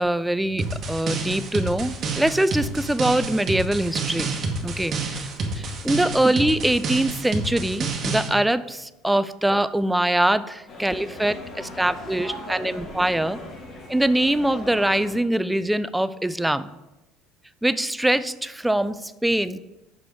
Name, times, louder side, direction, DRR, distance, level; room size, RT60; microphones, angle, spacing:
voice 1, 0.0-4.3 4.6-5.3 5.6-13.4 13.9-16.7 17.6-19.6, right 1 dB, 5° right, 14 dB, 0.3 m, -23 dB
sound 1, 0.6-8.3, right 3 dB, 45° right, 1.1 m, -29 dB
sound 2, 10.7-15.2, left 1 dB, 40° left, 1.8 m, -38 dB
5.0 x 5.0 x 4.5 m, 0.99 s
hypercardioid pair, 80°, 0 cm